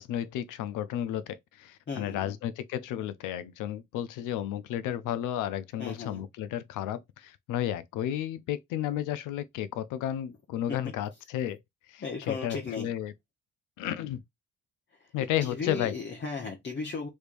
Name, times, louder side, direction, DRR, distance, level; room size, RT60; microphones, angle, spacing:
voice 1, 0.0-11.6 11.9-13.1 13.8-14.2 15.1-15.9, left 11 dB, 90° left, 0.5 m, -33 dB
voice 2, 1.9-2.4 5.8-6.2 10.7-10.8 12.0-12.9 15.0-15.1 15.4-17.1, left 4 dB, 35° left, 0.9 m, -36 dB
3.4 x 3.1 x 2.5 m
cardioid pair, 90°, 30 cm